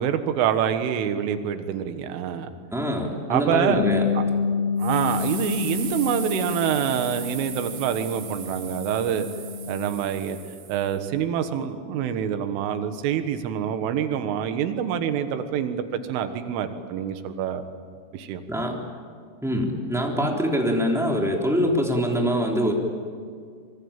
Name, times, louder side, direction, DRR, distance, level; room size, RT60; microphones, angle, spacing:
voice 1, 0.0-2.5 3.3-3.8 4.2-4.3 4.8-9.3 9.7-10.4 10.7-17.7 18.1-18.4, right 9 dB, 80° right, 8 dB, 4.0 m, -26 dB
voice 2, 2.7-4.0 18.5-18.8 19.4-22.7, equal, ahead, 0 dB, 2.4 m, -24 dB
Bass guitar, 3.7-9.9, left 6 dB, 65° left, 5.6 m, -29 dB
sound 1, 4.8-11.0, right 7 dB, 50° right, 3.7 m, -38 dB
26.0 x 23.0 x 8.9 m, 2.1 s
omnidirectional pair, 5.8 m